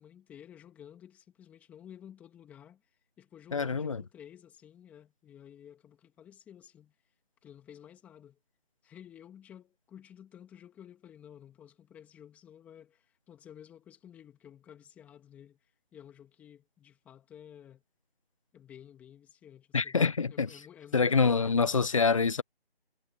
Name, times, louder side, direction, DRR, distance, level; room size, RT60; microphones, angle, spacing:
voice 1, 0.0-6.9 7.4-8.4 8.8-17.8 18.5-20.0 20.3-21.8, left 9 dB, 5° left, 2.8 m, -53 dB
voice 2, 3.5-4.0 19.7-20.6 20.9-22.4, left 5 dB, 30° left, 1.2 m, -26 dB
figure-of-eight pair, 165°, 31 cm